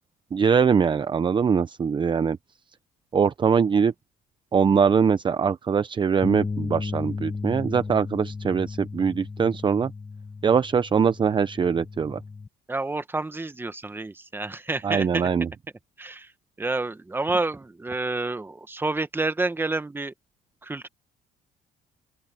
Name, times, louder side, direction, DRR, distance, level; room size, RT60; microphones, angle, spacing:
voice 1, 0.3-2.4 3.1-3.9 4.5-9.9 10.4-12.2 14.8-15.5, right 6 dB, 30° right, 0.7 m, -22 dB
sound 1, 6.2-12.5, left 4 dB, 20° left, 1.7 m, -34 dB
voice 2, 12.7-15.3 16.0-16.3 16.6-20.1 20.6-20.9, right 2 dB, 10° right, 1.2 m, -29 dB
open air
cardioid pair, 110°, 17 cm